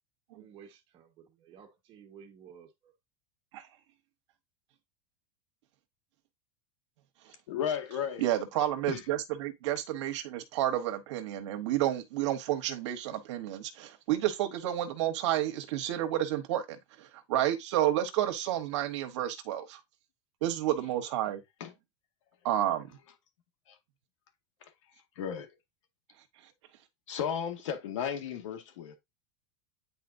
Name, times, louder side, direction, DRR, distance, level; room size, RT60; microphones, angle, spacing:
voice 1, 0.3-2.9, right 7 dB, 30° right, 1.4 m, -54 dB
voice 2, 7.5-8.2 8.9-9.0 21.6-21.7 25.2-25.5 27.1-29.0, left 8 dB, 85° left, 1.8 m, -34 dB
voice 3, 8.2-19.8 20.4-21.4 22.4-22.9, right 12 dB, 75° right, 1.1 m, -30 dB
9.2 x 4.2 x 2.6 m
supercardioid pair, 150°, 16 cm